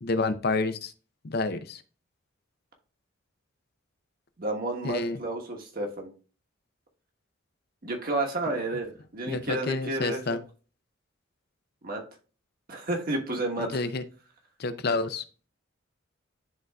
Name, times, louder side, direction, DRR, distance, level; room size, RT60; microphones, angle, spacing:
voice 1, 0.0-0.9 1.2-1.8 4.8-5.2 9.3-10.4 13.6-14.0 14.6-15.2, left 3 dB, 50° left, 11 dB, 0.6 m, -29 dB
voice 2, 4.4-6.1 7.8-10.4 11.8-12.0 12.7-13.8, right 2 dB, 45° right, 2 dB, 1.3 m, -31 dB
11.0 x 3.9 x 2.3 m, 0.36 s
head